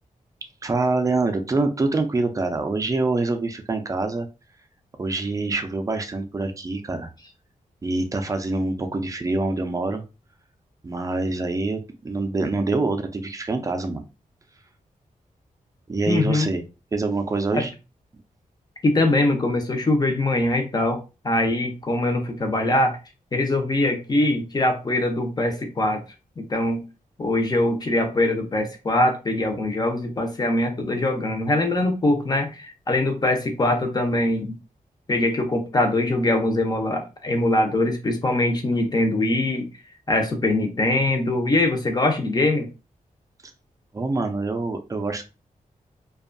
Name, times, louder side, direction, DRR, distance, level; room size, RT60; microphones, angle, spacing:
voice 1, 0.6-4.3 5.0-7.1 7.8-10.0 10.8-14.0 15.9-16.6 16.9-17.7 43.9-45.2, right 3 dB, 25° right, 7 dB, 0.4 m, -25 dB
voice 2, 16.1-16.5 17.5-17.6 18.8-21.0 21.2-23.0 23.3-26.0 26.4-26.8 27.2-34.6 35.1-39.7 40.1-42.7, left 2 dB, 30° left, 5 dB, 0.6 m, -22 dB
2.6 x 2.3 x 2.5 m, 0.29 s
wide cardioid pair, 160°, 14 cm